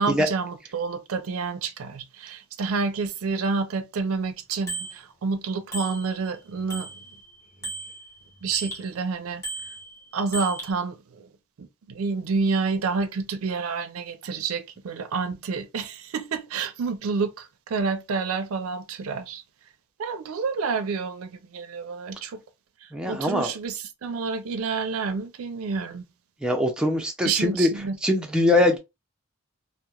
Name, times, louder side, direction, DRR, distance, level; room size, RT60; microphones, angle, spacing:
voice 1, 0.0-7.0 7.6-7.7 8.4-9.7 10.1-11.3 11.6-19.4 20.0-22.4 22.8-26.1 27.2-28.0, right 4 dB, 75° right, 0.4 m, -29 dB
Bicycle bell, 4.7-5.0 5.7-6.4 6.7-8.9 9.4-10.7, right 3 dB, 15° left, 0.8 m, -36 dB
voice 2, 22.9-23.5 26.4-27.7 28.0-28.8, left 1 dB, 5° right, 0.4 m, -22 dB
2.9 x 2.0 x 2.2 m
head